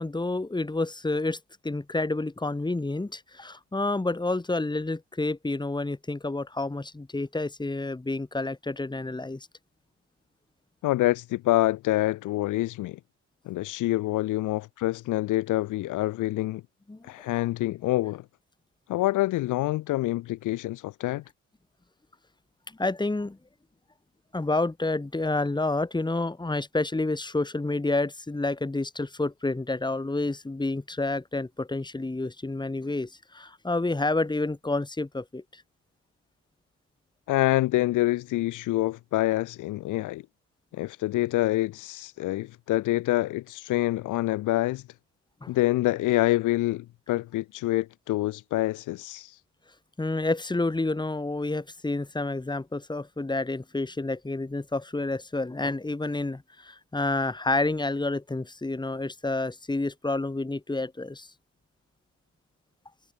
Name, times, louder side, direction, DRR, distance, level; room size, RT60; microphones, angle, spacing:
voice 1, 0.0-9.5 16.9-17.0 22.8-23.4 24.3-35.6 45.4-45.5 50.0-61.3, left 2 dB, 15° left, 3.8 m, -29 dB
voice 2, 10.8-13.0 13.5-16.6 17.0-18.2 18.9-21.2 37.3-40.2 40.7-44.8 45.5-49.4, left 17 dB, 85° left, 1.1 m, -26 dB
cardioid pair, 90°, 30 cm